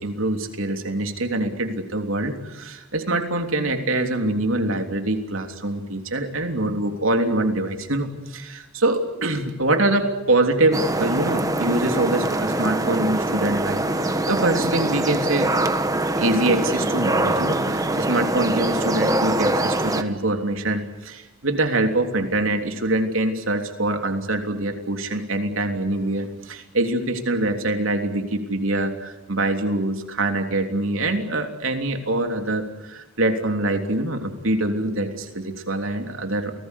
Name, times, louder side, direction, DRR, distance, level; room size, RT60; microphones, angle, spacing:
voice 1, 0.0-15.5 16.2-36.5, right 2 dB, 85° right, 5 dB, 3.3 m, -24 dB
sound 1, 10.7-20.0, right 1 dB, 15° right, 1.5 m, -23 dB
29.0 x 19.5 x 8.3 m, 1.1 s
head